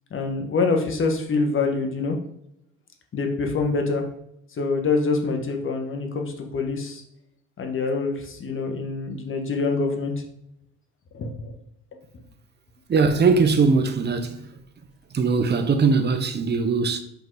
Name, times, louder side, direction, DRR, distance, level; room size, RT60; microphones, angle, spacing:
voice 1, 0.1-2.2 3.1-4.0 4.6-7.0 7.6-10.1 11.1-11.6, left 4 dB, 35° left, 1.4 m, -25 dB
voice 2, 12.9-14.4 15.1-17.0, right 4 dB, 30° right, 0.9 m, -20 dB
5.3 x 3.8 x 4.7 m
supercardioid pair, 80°, 34 cm